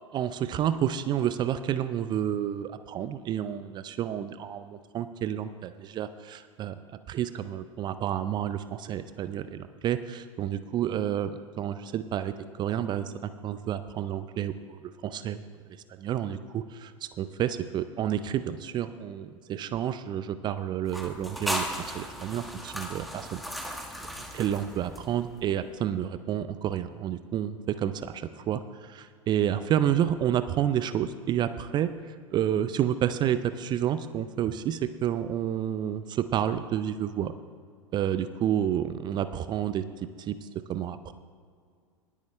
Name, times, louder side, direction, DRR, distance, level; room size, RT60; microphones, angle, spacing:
voice 1, 0.0-6.8 7.1-11.3 11.6-15.4 16.0-23.4 24.2-31.9 32.3-37.3 37.9-39.8 40.2-41.1, right 10 dB, 25° right, 12 dB, 0.5 m, -30 dB
sound 1, 20.9-25.4, equal, ahead, 1.3 m, -36 dB
20.0 x 8.5 x 3.3 m, 2.1 s
figure-of-eight pair, 90°, 17 cm